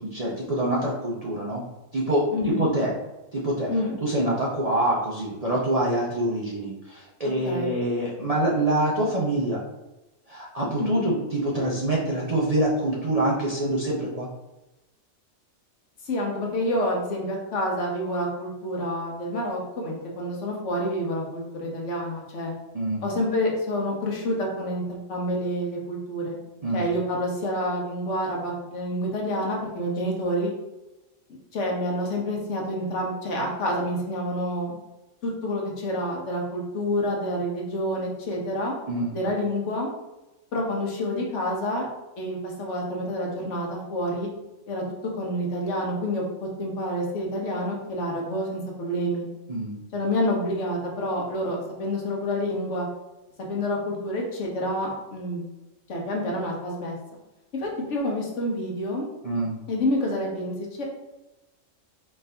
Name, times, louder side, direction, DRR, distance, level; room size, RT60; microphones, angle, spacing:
voice 1, 0.0-1.6 1.9-2.9 3.3-3.7 4.0-9.6 10.3-14.3 22.7-23.0 26.6-26.8 38.9-39.1 49.5-49.8 59.2-59.6, right 1 dB, 40° right, -5 dB, 0.6 m, -25 dB
voice 2, 2.3-2.7 3.7-4.0 7.4-7.8 10.8-11.2 16.0-22.5 23.0-26.4 26.7-30.5 31.5-34.8 35.2-38.7 39.1-39.9 40.5-41.9 42.2-44.3 44.7-44.8 45.2-49.3 49.9-52.9 53.5-55.4 55.9-57.0 57.5-59.0 59.7-60.8, equal, 65° left, -1 dB, 1.2 m, -28 dB
4.3 x 2.6 x 3.3 m, 1.0 s
omnidirectional pair, 1.3 m